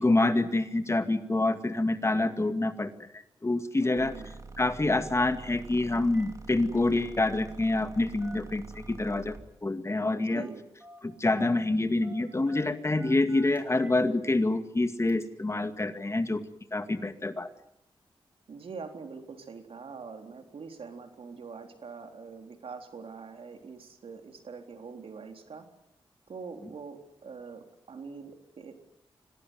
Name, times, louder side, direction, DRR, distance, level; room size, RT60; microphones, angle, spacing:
voice 1, 0.0-4.1 4.6-9.3 9.6-10.4 11.0-16.4 16.7-17.5, left 2 dB, 30° left, 9 dB, 2.2 m, -27 dB
voice 2, 3.8-4.3 10.2-10.6 18.5-25.7 26.3-28.8, right 5 dB, 75° right, 5 dB, 3.7 m, -44 dB
sound 1, 4.0-9.5, right 3 dB, 35° right, 3.3 m, -46 dB
Telephone, 5.5-5.7 6.0-6.3 6.6-7.9 8.2-9.1 10.3-10.5 10.8-11.5 12.0-14.0 14.4-14.5 15.1-15.2, right 1 dB, 15° right, 6.3 m, -52 dB
25.5 x 19.0 x 9.5 m, 0.80 s
cardioid pair, 60°, 10 cm